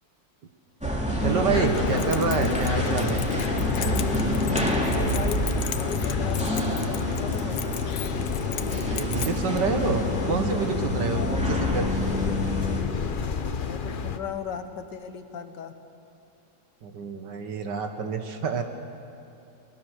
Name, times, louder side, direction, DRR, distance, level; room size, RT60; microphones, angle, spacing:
sound 1, 0.8-12.8, equal, 5° right, 2.4 m, -28 dB
sound 2, 1.2-14.2, left 6 dB, 55° left, 0.5 m, -30 dB
voice 1, 1.2-3.3 8.6-12.1 16.8-18.6, right 5 dB, 70° right, 6 dB, 1.9 m, -28 dB
Keys jangling, 1.7-9.6, left 11 dB, 85° left, 1.5 m, -38 dB
voice 2, 4.7-7.6 11.1-11.4 13.6-15.7, left 6 dB, 70° left, 8 dB, 1.6 m, -37 dB
22.5 x 20.0 x 6.5 m, 2.6 s
omnidirectional pair, 2.0 m